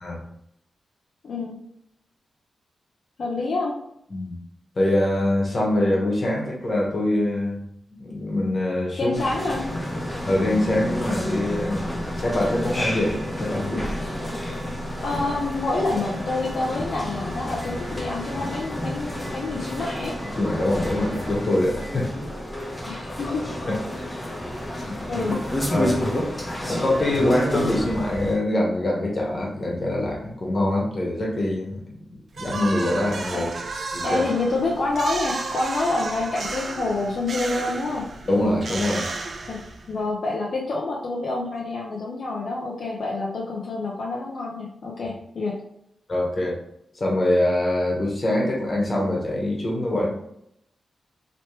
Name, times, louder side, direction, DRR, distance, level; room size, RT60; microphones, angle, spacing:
voice 1, 1.2-1.6 3.2-3.8 9.0-9.7 15.0-20.2 22.8-23.5 25.0-25.4 33.3-33.5 34.0-38.1 39.5-39.6 39.9-45.6, left 2 dB, 65° left, -3 dB, 0.6 m, -27 dB
voice 2, 4.8-7.6 8.0-9.2 10.2-11.8 12.1-14.1 20.2-22.1 22.5-22.6 23.7-23.8 24.1-24.2 24.7-25.3 25.7-26.0 26.7-33.5 33.9-34.2 38.3-39.1 46.1-46.6 46.9-50.1, left 1 dB, 40° left, -2 dB, 1.2 m, -24 dB
sound 1, 9.1-28.4, equal, 25° left, 0.9 m, -30 dB
sound 2, 32.3-40.0, right 3 dB, 60° right, 0.5 m, -33 dB
3.0 x 3.0 x 3.2 m, 0.76 s
cardioid pair, 75°, 0 cm